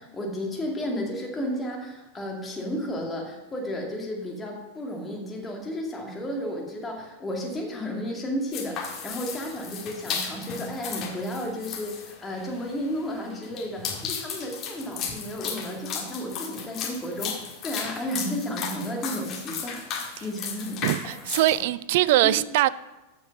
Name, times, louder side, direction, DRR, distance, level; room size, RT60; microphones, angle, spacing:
voice 1, 0.0-20.9 21.2-21.3 22.2-22.3, equal, 15° left, 2.3 m, -33 dB
sound 1, 8.5-21.6, left 6 dB, 35° left, 1.9 m, -35 dB
voice 2, 20.8-22.7, right 15 dB, 50° right, 0.3 m, -22 dB
13.5 x 5.5 x 5.4 m
figure-of-eight pair, 90°, 0 cm